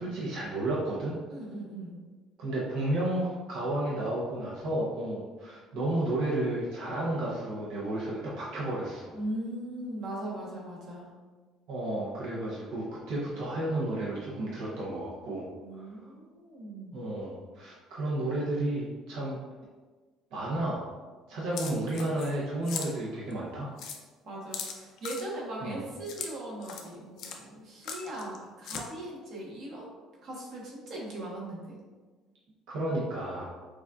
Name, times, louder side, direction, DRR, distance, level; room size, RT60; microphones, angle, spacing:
voice 1, 0.0-1.1 2.4-9.1 11.7-15.5 15.7-15.9 16.9-19.4 20.3-20.8 21.3-23.7 25.6-25.8 28.1-28.3 32.7-33.5, right 1 dB, 65° right, -6 dB, 0.8 m, -32 dB
voice 2, 1.3-2.0 9.1-11.1 15.6-17.0 24.2-29.9 30.2-31.8, right 1 dB, 40° right, -4 dB, 1.1 m, -39 dB
sound 1, 21.6-22.4 22.6-22.9 23.3-23.4 23.8-24.0 24.5-25.2 26.1-26.3 26.6-26.9 27.2-27.4 27.8-28.4 28.6-28.8, left 6 dB, 55° left, 0.4 m, -38 dB
6.1 x 2.5 x 2.3 m, 1.4 s
cardioid pair, 180°, 0 cm